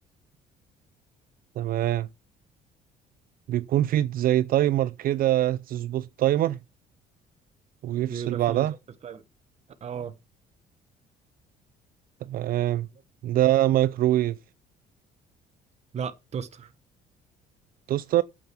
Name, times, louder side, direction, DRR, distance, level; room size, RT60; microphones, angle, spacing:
voice 1, 1.6-2.1 3.5-6.6 7.8-8.7 12.2-12.9 13.2-14.4 17.9-18.2, right 13 dB, 60° right, 0.5 m, -24 dB
voice 2, 8.0-8.7 9.0-9.2 9.8-10.1 15.9-16.7, right 7 dB, 40° right, 1.3 m, -35 dB
9.0 x 7.8 x 5.8 m
cardioid pair, 110°, 17 cm